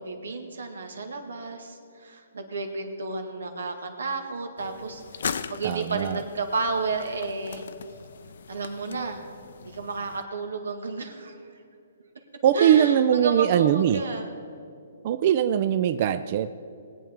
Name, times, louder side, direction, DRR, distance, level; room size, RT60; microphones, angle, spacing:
voice 1, 0.0-7.7 8.5-9.2 9.6-11.4 12.5-14.3, right 4 dB, 90° right, 5 dB, 1.8 m, -32 dB
sound 1, 4.6-10.2, left 6 dB, 65° left, 0.5 m, -39 dB
voice 2, 5.6-6.2 12.4-14.0 15.0-16.5, right 9 dB, 35° right, 11 dB, 0.4 m, -21 dB
20.5 x 8.6 x 3.6 m, 2.5 s
hypercardioid pair, 160°, 0 cm